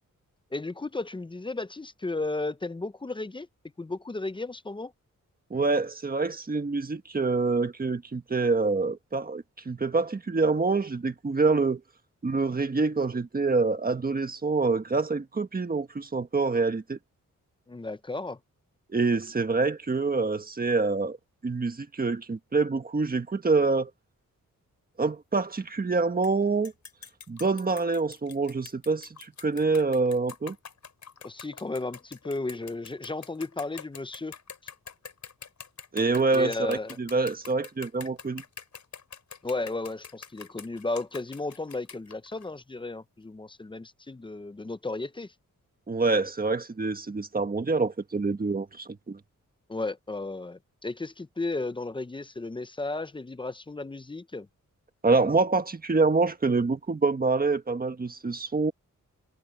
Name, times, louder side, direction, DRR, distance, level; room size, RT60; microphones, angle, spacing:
voice 1, 0.5-3.5 3.8-4.9 17.7-18.4 31.2-34.3 36.3-37.0 39.4-45.3 49.7-54.5, left 2 dB, 15° left, 0.6 m, -34 dB
voice 2, 5.5-11.8 12.2-17.0 18.9-21.2 21.4-23.9 25.0-26.7 27.3-29.1 29.4-30.5 35.9-38.4 45.9-49.2 55.0-58.7, right 3 dB, 30° right, 1.5 m, -26 dB
sound 1, 26.2-26.3 26.6-42.5, left 6 dB, 60° left, 4.8 m, -45 dB
wide cardioid pair, 135°, 31 cm